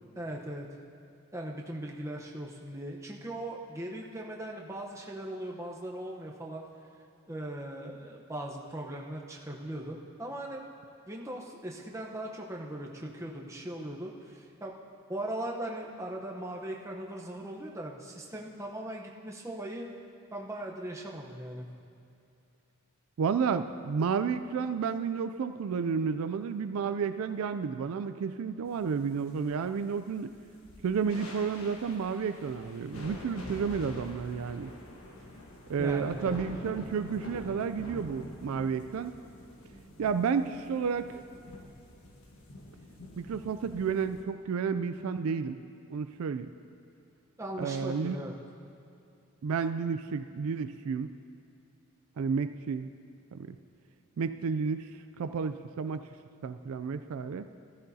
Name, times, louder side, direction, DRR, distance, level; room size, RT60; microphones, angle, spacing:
voice 1, 0.1-0.7 1.3-6.6 7.3-10.7 11.1-14.7 15.1-19.9 20.3-21.7 35.8-36.4 47.4-48.3, right 1 dB, 15° right, -1 dB, 0.8 m, -39 dB
voice 2, 23.2-30.3 30.8-34.7 35.7-39.1 40.0-41.2 43.2-45.6 45.9-46.5 47.6-48.2 49.4-51.1 52.2-52.9 53.3-53.6 54.2-54.9 55.2-56.0 56.4-57.5, right 6 dB, 80° right, 11 dB, 0.4 m, -31 dB
sound 1, 28.7-44.2, left 1 dB, 70° left, 1.3 m, -46 dB
14.0 x 14.0 x 2.8 m, 2.7 s
head